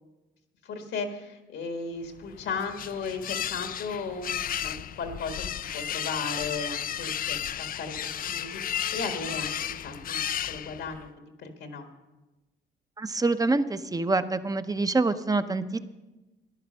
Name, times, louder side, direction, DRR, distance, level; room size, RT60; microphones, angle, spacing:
voice 1, 0.6-11.1 11.4-11.9, left 4 dB, 80° left, 5 dB, 1.6 m, -36 dB
sound 1, 2.2-11.1, left 10 dB, 45° left, 0.4 m, -33 dB
voice 2, 13.0-15.8, right 3 dB, 20° right, 11 dB, 0.7 m, -26 dB
14.0 x 10.5 x 5.6 m, 1.1 s
cardioid pair, 90°, 20 cm